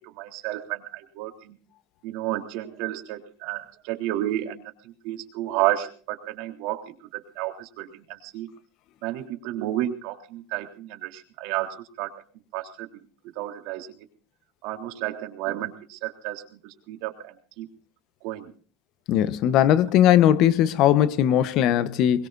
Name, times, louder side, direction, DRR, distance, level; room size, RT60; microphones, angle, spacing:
voice 1, 0.2-1.6 2.0-8.5 9.0-12.1 12.5-12.9 13.4-14.0 14.6-17.7 18.2-18.5, right 14 dB, 65° right, 3.5 m, -31 dB
voice 2, 19.1-22.3, left 11 dB, 55° left, 1.0 m, -19 dB
22.5 x 21.5 x 2.6 m
supercardioid pair, 120°, 0 cm